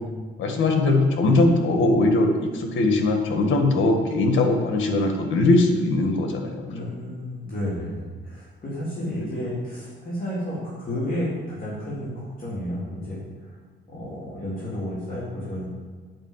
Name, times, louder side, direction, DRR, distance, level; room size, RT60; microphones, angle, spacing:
voice 1, 0.4-6.9 9.2-9.3, left 2 dB, 75° left, 4 dB, 1.7 m, -21 dB
voice 2, 6.6-7.9 8.2-13.5 13.9-15.7, equal, 45° left, -8 dB, 3.4 m, -31 dB
9.1 x 5.6 x 7.4 m, 1.5 s
cardioid pair, 90°, 20 cm